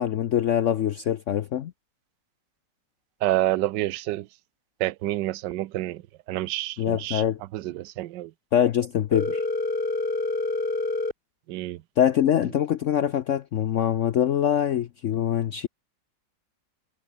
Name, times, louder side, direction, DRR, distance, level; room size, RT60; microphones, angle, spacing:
voice 1, 0.0-1.7 6.8-7.4 8.5-9.4 12.0-15.7, left 10 dB, 65° left, 0.7 m, -24 dB
voice 2, 3.2-4.3 4.8-6.0 6.3-7.2 7.5-8.3 11.5-11.8, right 15 dB, 80° right, 1.3 m, -28 dB
Telephone, 9.1-11.1, left 2 dB, 30° left, 3.2 m, -27 dB
omnidirectional pair, 1.9 m